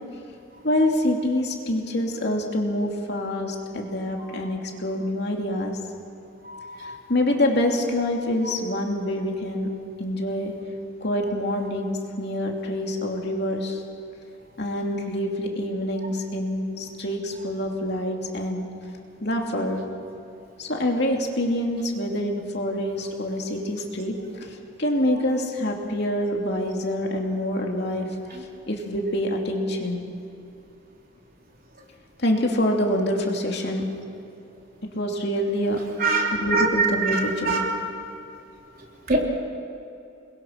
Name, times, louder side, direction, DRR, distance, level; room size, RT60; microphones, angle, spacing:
voice 1, 0.6-5.8 6.8-9.7 10.0-10.5 11.0-13.8 14.6-18.7 19.2-19.8 20.6-28.1 28.7-30.1 32.2-33.9 34.8-35.8 36.3-37.7, left 1 dB, 55° left, 1 dB, 2.9 m, -26 dB
voice 2, 36.0-37.6 39.1-39.2, right 3 dB, 45° right, 0 dB, 3.5 m, -23 dB
29.0 x 21.5 x 5.9 m, 2.7 s
head